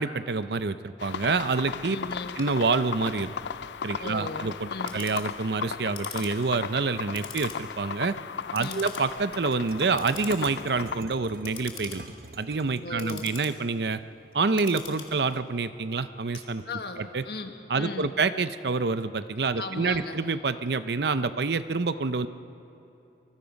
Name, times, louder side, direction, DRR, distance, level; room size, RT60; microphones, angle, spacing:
voice 1, 0.0-2.0 2.4-3.3 3.8-8.1 8.5-12.0 12.4-14.0 14.3-16.6 17.0-17.2 17.7-22.3, right 4 dB, 70° right, 12 dB, 0.7 m, -27 dB
sound 1, 1.0-11.0, left 6 dB, 85° left, 0.4 m, -36 dB
voice 2, 1.9-2.3 4.0-5.0 8.6-8.8 12.8-13.3 16.6-18.2 19.6-20.2, left 3 dB, 65° left, 5 dB, 1.6 m, -37 dB
Clock, 2.1-17.0, left 6 dB, 30° left, 2.3 m, -45 dB
sound 2, 8.8-12.9 14.5-15.3, right 2 dB, 55° right, 1.0 m, -46 dB
24.5 x 21.0 x 5.2 m, 2.9 s
head